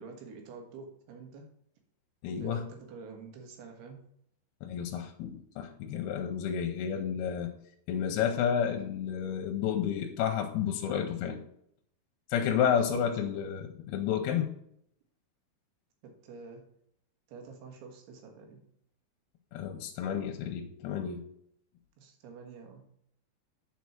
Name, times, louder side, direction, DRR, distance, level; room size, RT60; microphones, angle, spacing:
voice 1, 0.0-1.4 2.4-4.0 12.9-13.5 16.0-16.6 17.3-18.6 22.0-22.8, right 5 dB, 85° right, 3 dB, 3.5 m, -48 dB
voice 2, 2.2-2.6 4.6-7.5 7.9-11.4 12.3-14.5 19.5-21.2, left 8 dB, 90° left, 4 dB, 2.6 m, -31 dB
8.4 x 4.6 x 5.9 m, 0.70 s
omnidirectional pair, 4.6 m